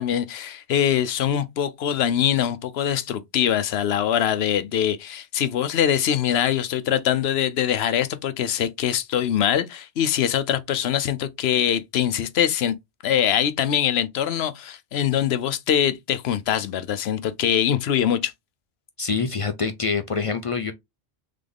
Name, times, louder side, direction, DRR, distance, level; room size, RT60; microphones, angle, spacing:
voice 1, 0.0-12.7 13.0-18.3, left 9 dB, 75° left, 0.9 m, -23 dB
voice 2, 19.0-20.7, left 5 dB, 45° left, 0.5 m, -25 dB
3.8 x 3.7 x 3.5 m
omnidirectional pair, 1.1 m